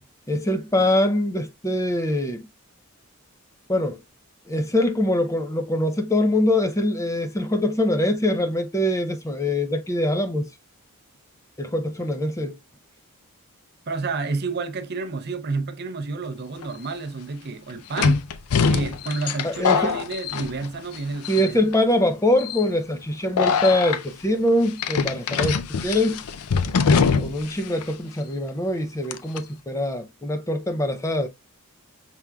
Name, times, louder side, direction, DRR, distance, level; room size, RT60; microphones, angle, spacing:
voice 1, 0.3-2.5 3.7-4.0 4.5-10.5 11.6-12.6 19.4-19.9 21.3-26.2 27.2-31.3, left 1 dB, 15° left, 0.5 m, -23 dB
voice 2, 13.9-18.2 18.7-21.6 25.1-25.5, right 4 dB, 45° right, 0.6 m, -30 dB
sound 1, 16.6-16.7 18.0-21.0 21.2-21.8 22.4-22.6 23.4-24.0 24.8-27.5 27.8-27.9 29.1-29.4, left 5 dB, 85° left, 0.5 m, -23 dB
5.8 x 3.6 x 2.2 m
head